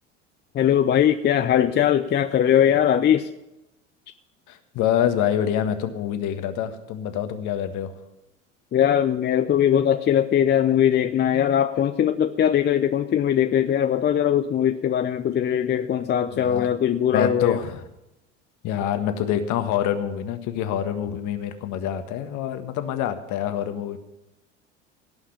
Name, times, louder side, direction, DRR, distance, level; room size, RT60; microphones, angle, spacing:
voice 1, 0.5-3.3 8.7-17.6, left 9 dB, 30° left, 9 dB, 0.6 m, -20 dB
voice 2, 4.5-7.9 16.3-16.7 17.1-17.8 18.6-24.0, left 10 dB, 50° left, 8 dB, 1.6 m, -26 dB
17.5 x 5.8 x 8.9 m, 0.91 s
hypercardioid pair, 75°, 37 cm